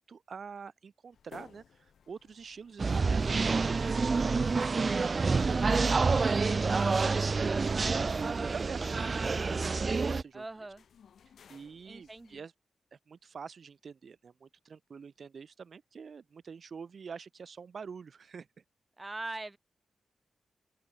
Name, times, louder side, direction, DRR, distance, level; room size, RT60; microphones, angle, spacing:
voice 1, 0.0-10.4 11.5-12.5 12.9-18.5, right 6 dB, 50° right, 1.8 m, -46 dB
sound 1, 1.1-12.4, left 7 dB, 75° left, 4.0 m, -61 dB
sound 2, 2.8-10.2, right 4 dB, 30° right, 0.5 m, -28 dB
voice 2, 6.5-7.0 10.3-10.8 11.8-12.4 19.0-19.6, right 2 dB, 15° right, 2.4 m, -43 dB
open air
wide cardioid pair, 165°, 0 cm